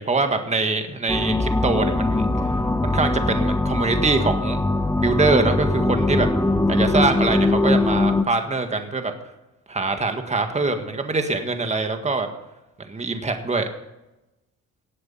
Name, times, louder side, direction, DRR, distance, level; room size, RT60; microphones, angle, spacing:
voice 1, 0.0-4.6 5.0-6.3 6.7-9.1 9.7-12.3 12.9-13.7, right 3 dB, 20° right, 6 dB, 1.8 m, -24 dB
sound 1, 1.1-8.2, left 2 dB, 10° left, 0.8 m, -21 dB
18.0 x 8.0 x 5.6 m, 0.97 s
cardioid pair, 90°, 30 cm